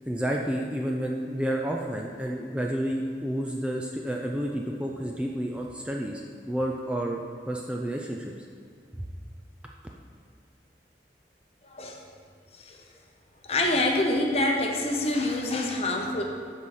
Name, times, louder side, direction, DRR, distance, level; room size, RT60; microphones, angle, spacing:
voice 1, 0.1-6.2 6.5-8.3 9.0-9.1, right 1 dB, 5° right, -1 dB, 0.4 m, -30 dB
voice 2, 13.5-16.2, left 2 dB, 35° left, 1 dB, 0.9 m, -26 dB
12.0 x 4.2 x 4.8 m, 2.1 s
head